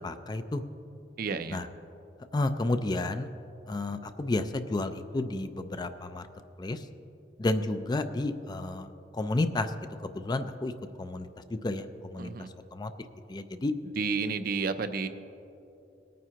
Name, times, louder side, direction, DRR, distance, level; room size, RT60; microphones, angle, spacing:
voice 1, 0.0-0.6 1.5-1.7 2.3-3.3 3.7-6.3 6.6-6.8 7.4-8.9 9.1-9.7 10.1-10.7 11.0-12.3 12.7-12.9 13.3-13.7, left 2 dB, 25° left, 10 dB, 0.4 m, -31 dB
voice 2, 1.2-1.6 12.2-12.5 14.0-15.1, right 4 dB, 55° right, 10 dB, 0.5 m, -31 dB
19.5 x 9.2 x 2.9 m, 2.8 s
head